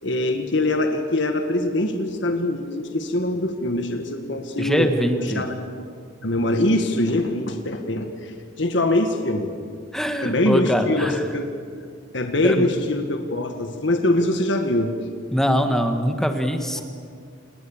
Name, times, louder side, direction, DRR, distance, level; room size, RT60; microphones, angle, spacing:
voice 1, 0.0-4.9 5.4-5.5 6.2-9.5 10.2-11.5 12.1-14.9 16.7-16.8, left 1 dB, 60° left, 5 dB, 1.8 m, -23 dB
voice 2, 4.6-5.5 9.9-11.3 12.4-12.7 15.3-16.8, equal, ahead, 6 dB, 1.5 m, -23 dB
29.5 x 20.0 x 7.4 m, 2.2 s
head